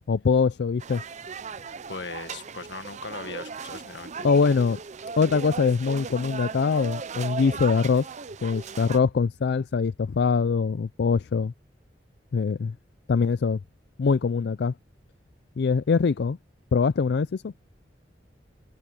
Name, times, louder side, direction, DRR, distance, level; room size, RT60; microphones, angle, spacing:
voice 1, 0.1-1.0 4.2-4.8 5.2-8.1 8.4-11.5 12.3-12.7 13.1-13.6 14.0-14.7 15.6-16.4 16.7-17.5, left 5 dB, 65° left, 0.4 m, -23 dB
sound 1, 0.8-9.0, right 5 dB, 40° right, 0.6 m, -37 dB
voice 2, 1.9-4.3, left 4 dB, 90° left, 1.7 m, -38 dB
head